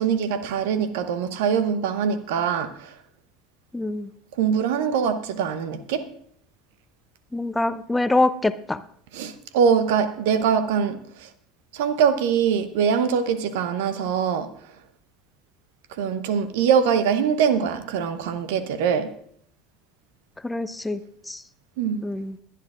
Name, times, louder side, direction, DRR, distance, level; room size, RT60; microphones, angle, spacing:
voice 1, 0.0-2.9 4.4-6.0 9.1-11.3 11.7-14.5 16.0-19.1 21.8-22.0, right 7 dB, 70° right, 0.8 m, -23 dB
voice 2, 3.7-4.1 7.3-8.8 20.4-21.0 21.3-21.4 22.0-22.4, left 2 dB, 10° left, 0.5 m, -24 dB
21.5 x 10.0 x 2.5 m
figure-of-eight pair, 70°, 0 cm